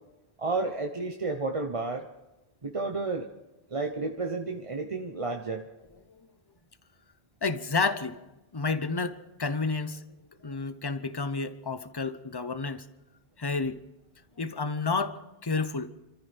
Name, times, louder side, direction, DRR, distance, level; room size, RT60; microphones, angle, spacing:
voice 1, 0.4-2.1 2.6-3.3 3.7-5.7, right 3 dB, 35° right, 0.9 m, -31 dB
voice 2, 7.4-10.0 10.4-12.9 13.4-13.8 14.4-15.9, left 4 dB, 25° left, 0.8 m, -30 dB
27.5 x 14.5 x 3.5 m
omnidirectional pair, 1.0 m